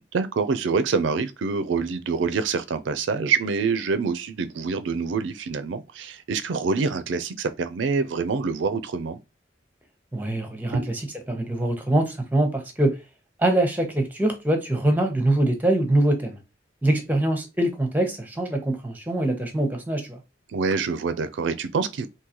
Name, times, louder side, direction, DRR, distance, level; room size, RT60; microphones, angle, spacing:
voice 1, 0.1-9.2 10.7-10.9 20.5-22.1, right 5 dB, 80° right, 0.4 m, -26 dB
voice 2, 10.1-13.0 13.4-16.4 16.8-20.2, right 1 dB, 10° right, 0.7 m, -23 dB
3.8 x 2.7 x 2.9 m
head